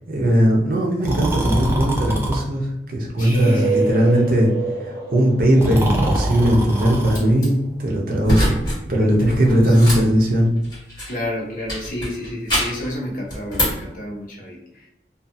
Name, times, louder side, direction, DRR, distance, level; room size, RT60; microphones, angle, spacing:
voice 1, 0.1-4.5 4.8-8.6 8.9-10.5, equal, 55° right, -1 dB, 0.6 m, -18 dB
Breathing, 1.0-2.4 3.2-3.9 5.5-7.3, right 1 dB, 15° right, 0.3 m, -24 dB
voice 2, 3.2-4.3 9.0-10.1 11.1-14.9, equal, 50° left, -2 dB, 0.6 m, -30 dB
sound 1, 3.3-6.9, right 3 dB, 30° right, 1.5 m, -27 dB
sound 2, 7.1-7.5 8.2-8.8 9.1-11.2 11.7-12.9 13.3-13.9, equal, 25° left, 1.3 m, -24 dB
2.6 x 2.3 x 2.5 m, 0.87 s
head